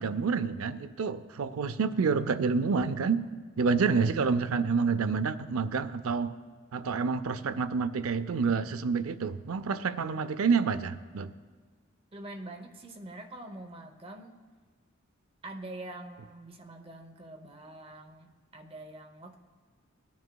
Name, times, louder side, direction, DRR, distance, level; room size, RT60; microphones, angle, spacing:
voice 1, 0.0-3.2 3.6-6.4 6.7-11.3, right 5 dB, 90° right, 13 dB, 0.5 m, -28 dB
voice 2, 12.1-14.4 15.4-19.4, right 1 dB, 25° right, 4 dB, 0.7 m, -45 dB
18.5 x 9.4 x 2.3 m, 1.5 s
head